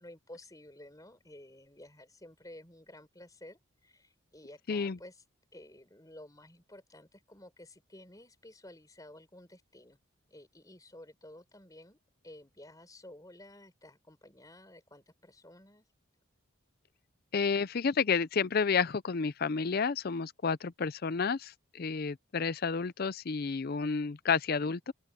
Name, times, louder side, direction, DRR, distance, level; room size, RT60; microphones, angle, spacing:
voice 1, 0.0-5.2 5.5-10.0 10.3-12.0 12.2-15.8, left 1 dB, 15° left, 4.3 m, -53 dB
voice 2, 17.3-24.9, left 5 dB, 45° left, 0.5 m, -30 dB
open air
head